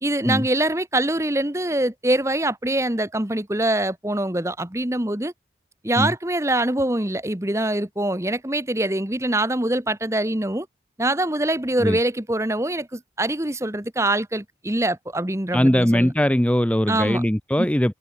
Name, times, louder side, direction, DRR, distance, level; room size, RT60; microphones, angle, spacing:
voice 1, 0.0-5.3 5.8-10.7 11.0-16.1 16.9-17.2, right 1 dB, 15° right, 1.3 m, -24 dB
voice 2, 15.5-18.0, equal, 5° left, 0.7 m, -20 dB
head